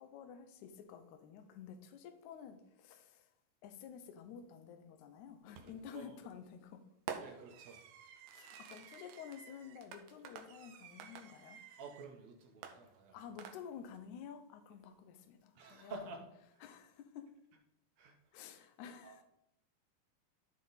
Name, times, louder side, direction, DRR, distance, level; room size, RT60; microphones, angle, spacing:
voice 1, 0.0-3.3 3.6-6.8 8.3-11.6 13.1-16.2 16.6-17.3 18.3-19.2, left 8 dB, 75° left, 7 dB, 2.0 m, -51 dB
Fireworks, 5.6-6.0 7.1-12.1 12.6-14.0, right 6 dB, 85° right, 2.3 m, -52 dB
voice 2, 7.2-7.8 11.8-13.2 15.6-16.3 18.0-18.2 19.0-19.2, right 4 dB, 65° right, 3 dB, 1.9 m, -50 dB
13.0 x 4.4 x 4.0 m, 0.82 s
omnidirectional pair, 4.0 m